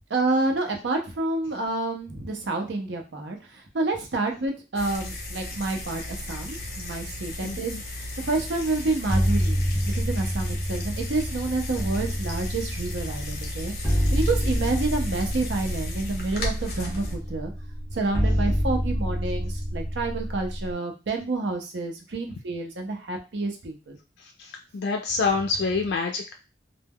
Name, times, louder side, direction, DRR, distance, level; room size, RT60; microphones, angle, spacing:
voice 1, 0.1-17.5 17.9-24.0, right 3 dB, 85° right, 3 dB, 0.6 m, -29 dB
sound 1, 4.7-17.2, left 1 dB, 55° left, 0.7 m, -35 dB
voice 2, 7.4-7.8 24.4-26.3, left 4 dB, 85° left, 2 dB, 0.3 m, -27 dB
sound 2, 9.1-20.7, equal, 5° right, 0.6 m, -28 dB
2.2 x 2.0 x 3.4 m, 0.30 s
head